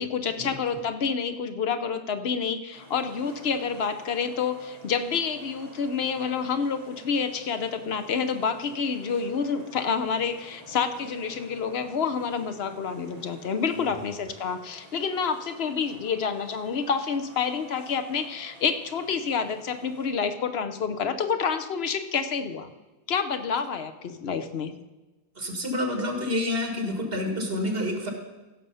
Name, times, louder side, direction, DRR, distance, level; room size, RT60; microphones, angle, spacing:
voice 1, 0.0-22.7 23.1-24.7, left 6 dB, 75° left, 10 dB, 1.0 m, -28 dB
sound 1, 2.7-20.1, right 1 dB, 30° right, 5.2 m, -50 dB
voice 2, 25.4-28.1, left 1 dB, 65° right, 2 dB, 2.1 m, -28 dB
16.0 x 6.7 x 5.5 m, 1.1 s
omnidirectional pair, 1.0 m